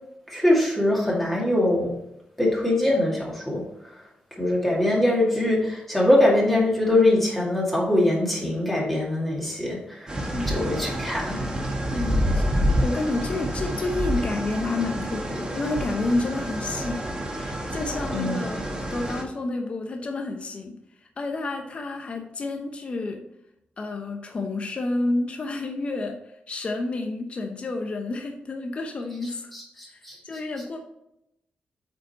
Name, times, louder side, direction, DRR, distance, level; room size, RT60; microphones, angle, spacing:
voice 1, 0.3-1.9 2.4-3.6 4.4-11.5 18.1-18.6 29.5-30.2, left 1 dB, 5° left, -4 dB, 2.2 m, -23 dB
sound 1, 10.1-19.2, equal, 25° right, 1.5 m, -28 dB
voice 2, 10.3-10.7 11.9-12.4 12.8-20.8 21.2-23.2 23.8-26.2 26.5-29.5 29.9-30.8, left 2 dB, 40° left, 3 dB, 0.8 m, -30 dB
8.3 x 5.2 x 4.2 m, 0.82 s
wide cardioid pair, 155°, 3 cm